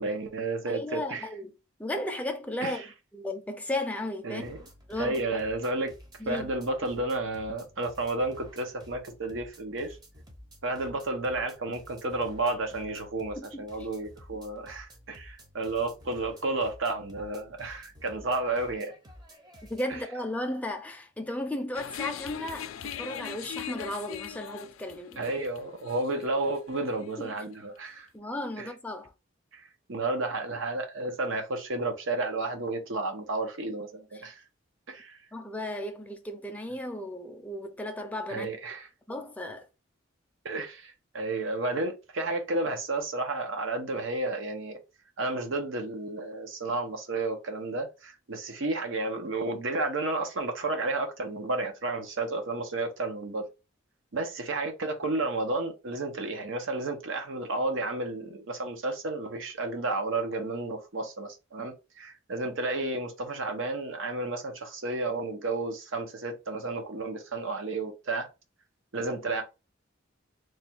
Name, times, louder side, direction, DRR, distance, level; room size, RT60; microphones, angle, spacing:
voice 1, 0.0-1.3 2.6-2.9 4.2-4.6 5.0-5.9 6.3-10.0 10.6-19.0 19.9-20.0 25.2-28.1 28.6-28.7 29.5-34.4 34.9-35.2 38.3-38.9 40.4-44.8 45.2-53.5 54.1-68.3 68.9-69.4, right 2 dB, 70° right, 0.8 m, -32 dB
voice 2, 0.7-1.5 1.8-2.8 3.1-4.4 4.9-5.1 6.2-6.5 13.5-13.6 19.7-25.3 27.2-27.3 28.1-29.1 35.3-38.5 39.1-39.7, left 1 dB, 5° left, 0.5 m, -35 dB
sound 1, 4.4-20.0, equal, 20° right, 0.8 m, -52 dB
sound 2, 21.7-27.2, left 9 dB, 85° left, 0.4 m, -40 dB
3.2 x 2.3 x 4.3 m
head